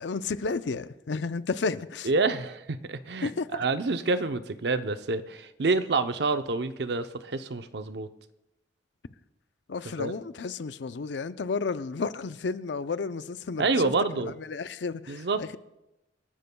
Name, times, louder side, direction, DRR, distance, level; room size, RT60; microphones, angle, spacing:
voice 1, 0.0-2.1 3.2-3.6 9.7-13.9 14.4-15.6, left 4 dB, 75° left, 0.5 m, -32 dB
voice 2, 2.0-8.1 10.0-10.1 13.6-14.3 15.1-15.4, right 3 dB, 65° right, 0.7 m, -28 dB
28.0 x 12.0 x 2.3 m
head